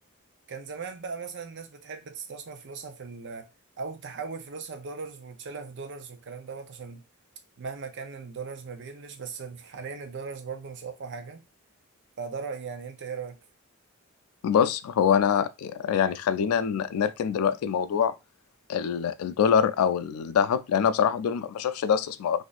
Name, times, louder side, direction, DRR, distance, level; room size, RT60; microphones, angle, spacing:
voice 1, 0.5-3.5 3.8-7.0 7.6-11.4 12.2-13.4, right 5 dB, 55° right, 0.6 m, -38 dB
voice 2, 14.4-18.1 18.7-22.4, left 7 dB, 90° left, 0.3 m, -24 dB
2.6 x 2.4 x 4.0 m
head